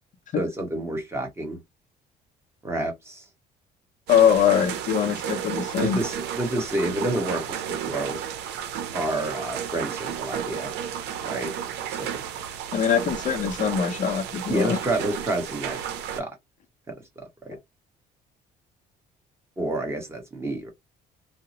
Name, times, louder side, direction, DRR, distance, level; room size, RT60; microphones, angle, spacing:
voice 1, 0.3-1.6 2.6-3.2 5.8-8.2 8.9-10.7 11.2-11.5 12.0-12.2 14.5-15.8 16.1-16.3 17.5-17.6 19.6-20.7, right 1 dB, 15° right, 1.1 m, -29 dB
voice 2, 4.1-6.0 12.7-14.8, left 8 dB, 50° left, 0.5 m, -22 dB
sound 1, 4.1-16.2, right 9 dB, 80° right, 0.6 m, -32 dB
2.8 x 2.0 x 2.6 m
cardioid pair, 110°, 17 cm